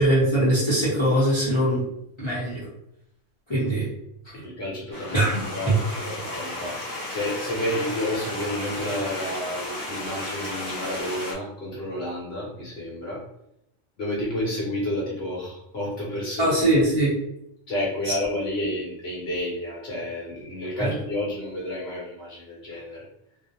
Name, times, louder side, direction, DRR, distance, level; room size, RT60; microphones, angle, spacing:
voice 1, 0.0-1.8 2.2-2.7 3.5-3.9 4.3-4.4 5.1-5.4 5.7-5.8 16.4-17.1 18.0-18.1 20.8-21.0, right 1 dB, 30° left, -9 dB, 0.6 m, -21 dB
voice 2, 4.3-5.7 6.0-13.2 14.0-16.5 17.7-23.0, left 1 dB, 60° left, -5 dB, 0.9 m, -30 dB
sound 1, 4.9-11.3, left 1 dB, 55° right, 0.8 m, -34 dB
2.4 x 2.0 x 2.7 m, 0.80 s
omnidirectional pair, 1.3 m